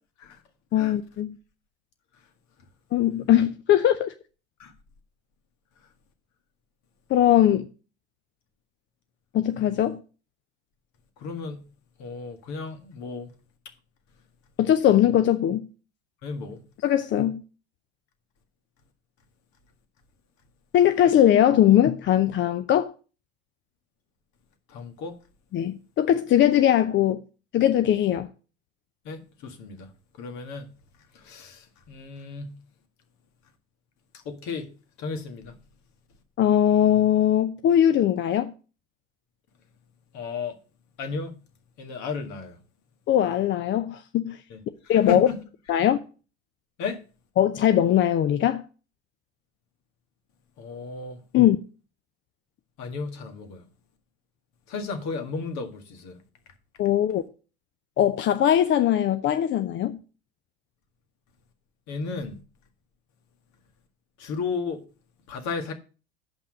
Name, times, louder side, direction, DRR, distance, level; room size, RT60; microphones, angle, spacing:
voice 1, 0.7-1.3 2.9-4.1 7.1-7.7 9.3-10.0 14.6-15.7 16.8-17.4 20.7-22.9 25.5-27.2 27.5-28.3 36.4-38.5 43.1-44.4 44.9-45.3 45.7-46.0 47.4-48.6 51.3-51.6 56.8-57.2 58.0-60.0, left 11 dB, 35° left, 0.6 m, -20 dB
voice 2, 11.2-11.7 12.0-13.3 16.2-16.6 24.7-25.1 29.0-29.9 30.2-30.7 31.1-32.6 34.1-34.7 35.0-35.6 40.1-40.6 41.0-41.4 41.8-42.6 44.5-45.4 46.8-47.0 50.6-51.2 52.8-53.6 54.7-56.2 61.9-62.4 64.2-64.8 65.3-65.7, left 4 dB, 50° left, 1.9 m, -34 dB
7.2 x 5.5 x 6.3 m
hypercardioid pair, 80°, 35 cm